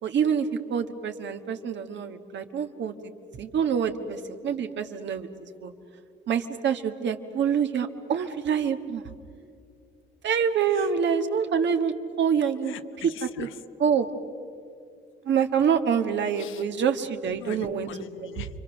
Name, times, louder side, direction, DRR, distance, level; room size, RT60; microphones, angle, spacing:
voice 1, 0.0-3.0 3.4-5.3 5.6-5.7 6.3-9.0 10.2-12.7 13.2-13.5 13.8-14.1 15.2-17.9, right 7 dB, 65° right, 6 dB, 1.6 m, -26 dB
voice 2, 12.7-13.5 16.4-16.6 17.4-18.5, left 10 dB, 80° left, 11 dB, 1.0 m, -41 dB
29.5 x 24.0 x 6.6 m, 2.5 s
cardioid pair, 90°, 20 cm